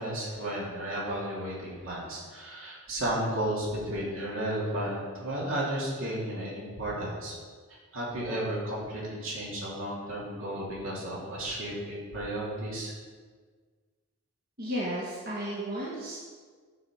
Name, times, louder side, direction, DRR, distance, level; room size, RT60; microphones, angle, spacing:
voice 1, 0.0-7.3 7.9-12.9, right 1 dB, 65° right, -5 dB, 2.9 m, -33 dB
voice 2, 14.6-16.2, equal, 45° right, -8 dB, 1.8 m, -33 dB
9.3 x 4.9 x 7.2 m, 1.5 s
head